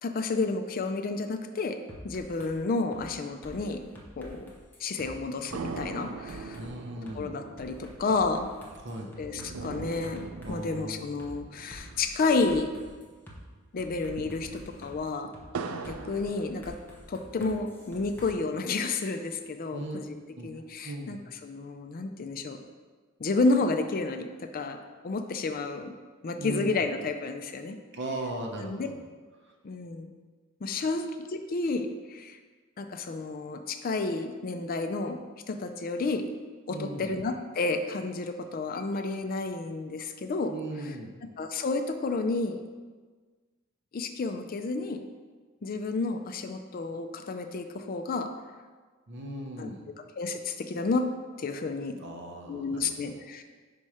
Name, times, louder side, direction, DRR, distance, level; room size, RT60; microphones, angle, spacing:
voice 1, 0.0-1.8 2.0-3.8 4.2-4.5 4.8-6.6 7.1-8.5 9.2-12.8 13.7-15.3 15.8-16.7 17.1-20.1 20.4-21.2 21.4-22.6 23.2-24.8 25.0-25.9 26.2-27.8 28.6-28.9 29.6-30.1 30.6-32.4 32.8-35.2 35.5-36.2 36.7-40.5 41.4-42.6 43.9-45.0 45.6-48.3 49.6-49.7 50.2-51.1 51.4-52.0 52.5-53.4, left 3 dB, 45° left, 7 dB, 0.4 m, -31 dB
sound 1, 1.9-2.5 2.9-3.1 3.4-5.1 5.5-6.7 7.1-7.2 7.6-10.8 11.2-11.3 11.7-13.4 13.8-14.9 15.3-15.5 15.8-18.3, equal, 10° left, 0.8 m, -48 dB
sound 2, 5.5-13.1 13.4-13.5 13.9-17.3 17.8-18.8, right 4 dB, 85° right, 0.4 m, -42 dB
voice 2, 6.6-7.3 8.8-9.1 10.4-11.0 11.8-12.0 19.7-20.0 20.4-20.5 20.8-21.2 26.4-26.7 27.9-28.9 30.8-30.9 36.7-37.1 40.5-41.2 49.1-49.8 52.0-53.2, right 1 dB, 55° right, 1 dB, 0.9 m, -38 dB
5.3 x 4.3 x 4.8 m, 1.4 s
head